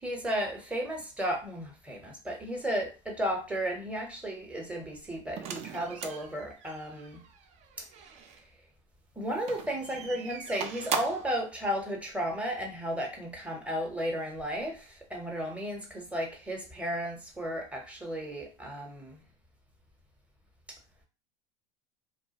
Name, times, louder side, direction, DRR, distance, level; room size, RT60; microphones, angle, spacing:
voice 1, 0.0-7.2 9.2-19.2, equal, 10° right, 0.9 m, -34 dB
sound 1, 5.4-8.4 9.4-11.4, right 7 dB, 45° right, 0.4 m, -39 dB
2.4 x 2.2 x 2.8 m
supercardioid pair, 105°, 16 cm